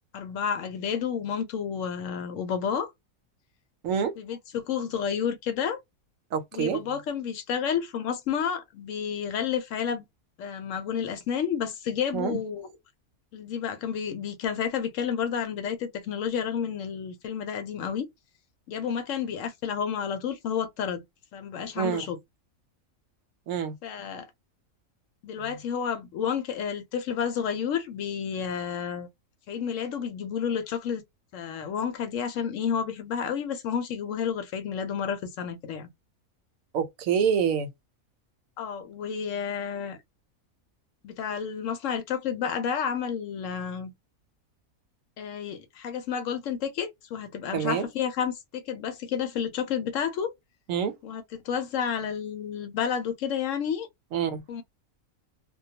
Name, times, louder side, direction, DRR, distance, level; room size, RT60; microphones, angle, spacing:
voice 1, 0.1-2.9 4.2-5.8 6.5-10.0 10.4-12.7 13.3-18.1 18.7-21.0 21.3-22.2 23.8-24.3 25.2-29.1 29.5-31.0 31.3-35.9 38.6-40.0 41.0-43.9 45.2-50.3 51.0-53.9 54.5-54.6, left 7 dB, 70° left, 0.9 m, -30 dB
voice 2, 6.3-6.8 12.1-12.4 21.8-22.0 23.5-23.7 36.7-37.7 47.5-47.9 50.7-50.9 54.1-54.4, right 7 dB, 75° right, 0.9 m, -26 dB
2.2 x 2.2 x 2.6 m
omnidirectional pair, 1.5 m